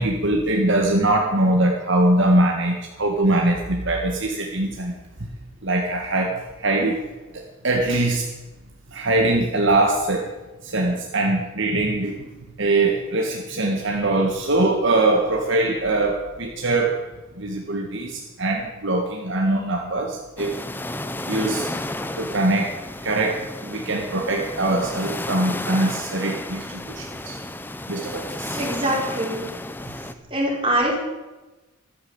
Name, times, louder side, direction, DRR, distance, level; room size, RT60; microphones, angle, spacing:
voice 1, 0.0-4.9 5.6-7.0 7.3-8.3 8.9-10.2 10.6-12.2 12.6-17.0 17.4-20.5 21.3-21.7 22.2-22.7 23.0-27.4 27.9-28.6, right 2 dB, 55° right, 1 dB, 1.7 m, -22 dB
sound 1, 20.4-30.1, left 1 dB, 10° left, 0.7 m, -32 dB
voice 2, 28.5-29.5 30.3-31.0, right 1 dB, 25° right, -3 dB, 4.8 m, -23 dB
14.5 x 12.5 x 8.1 m, 1.1 s
head